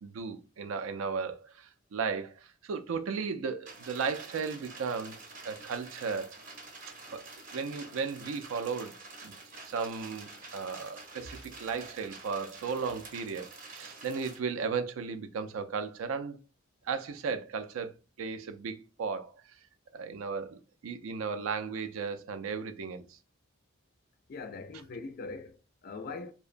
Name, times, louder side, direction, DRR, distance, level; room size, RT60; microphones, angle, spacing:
voice 1, 0.0-5.2 5.4-6.3 7.1-7.2 7.5-9.0 9.2-9.3 9.6-16.4 16.8-19.3 19.9-23.2, right 5 dB, 85° right, 0.4 m, -35 dB
sound 1, 3.7-14.4, right 3 dB, 40° right, 0.7 m, -48 dB
voice 2, 24.3-26.3, left 3 dB, 45° left, 0.4 m, -41 dB
2.7 x 2.1 x 2.4 m
head